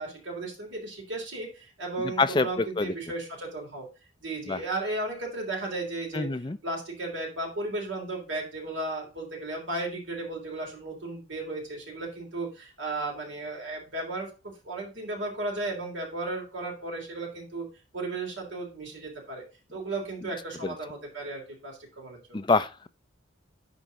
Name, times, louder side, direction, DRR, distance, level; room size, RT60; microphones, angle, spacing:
voice 1, 0.0-3.9 4.2-6.3 6.6-14.3 14.6-17.7 17.9-19.4 19.7-22.4, right 2 dB, 75° right, 3.5 m, -35 dB
voice 2, 2.2-2.9 4.5-4.6 6.1-6.6 20.6-20.7 22.3-22.9, left 3 dB, 25° left, 0.4 m, -26 dB
11.5 x 4.6 x 4.1 m
head